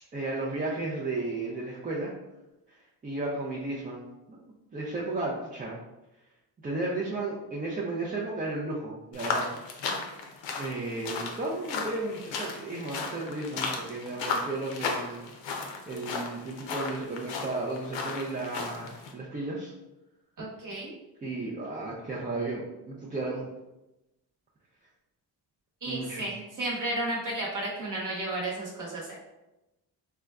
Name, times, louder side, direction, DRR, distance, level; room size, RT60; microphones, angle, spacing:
voice 1, 0.1-2.1 2.7-2.8 3.0-4.0 4.3-4.4 4.7-5.8 6.6-9.5 9.7-9.9 10.6-15.3 15.9-19.7 21.2-23.5 25.9-26.3, right 2 dB, 20° right, -5 dB, 0.3 m, -34 dB
sound 1, 9.1-19.1, left 4 dB, 85° left, 0.6 m, -35 dB
voice 2, 20.4-20.9 25.8-29.2, right 1 dB, 45° right, -4 dB, 1.0 m, -33 dB
3.7 x 2.2 x 2.3 m, 0.97 s
cardioid pair, 110°, 43 cm